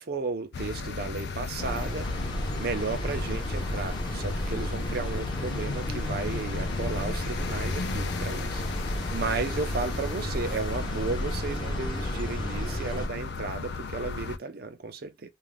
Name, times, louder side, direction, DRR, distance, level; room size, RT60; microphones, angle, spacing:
voice 1, 0.0-2.1 2.6-15.3, right 4 dB, 55° right, 0.5 m, -34 dB
sound 1, 0.5-14.4, left 4 dB, 60° left, 0.4 m, -35 dB
sound 2, 1.6-13.1, equal, 25° left, 0.7 m, -33 dB
2.5 x 2.2 x 3.3 m
head